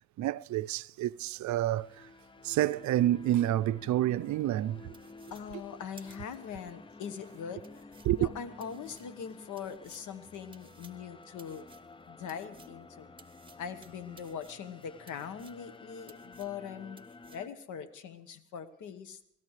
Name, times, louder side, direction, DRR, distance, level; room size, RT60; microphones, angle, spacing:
voice 1, 0.2-2.1 2.4-4.9 8.0-8.3, right 14 dB, 70° right, 0.5 m, -29 dB
sound 1, 1.2-17.5, left 3 dB, 15° left, 0.5 m, -52 dB
sound 2, 4.9-6.7 7.2-7.3 7.6-12.8 13.2-15.8 16.1-16.7 17.0-17.5, right 4 dB, 15° right, 1.5 m, -59 dB
voice 2, 5.3-7.9 8.2-11.7 12.1-13.1 13.6-17.0 17.3-19.2, left 7 dB, 85° left, 1.4 m, -42 dB
29.5 x 14.0 x 3.3 m
cardioid pair, 90°, 30 cm